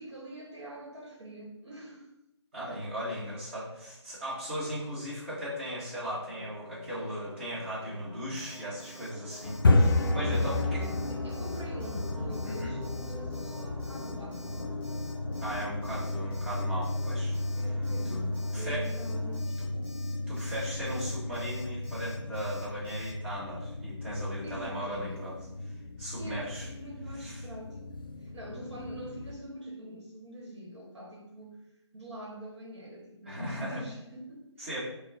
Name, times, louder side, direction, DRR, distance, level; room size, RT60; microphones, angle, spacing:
voice 1, 0.0-2.1 10.5-14.7 17.6-19.7 24.4-25.2 26.2-27.9 28.2-31.6 31.9-34.8, right 1 dB, 65° right, -3 dB, 1.2 m, -44 dB
voice 2, 2.5-10.8 12.5-12.7 15.4-17.3 18.1-18.2 18.5-18.9 20.3-25.3 26.0-26.7 27.2-27.4 33.2-33.8 34.6-34.8, equal, 25° right, -10 dB, 1.4 m, -37 dB
sound 1, 6.3-19.4, equal, 85° right, 0.6 m, -47 dB
Alarm, 8.3-23.1, equal, 25° left, 1.3 m, -53 dB
sound 2, 9.4-29.3, left 2 dB, 50° left, 0.4 m, -32 dB
4.3 x 2.2 x 3.6 m, 0.88 s
figure-of-eight pair, 165°, 15 cm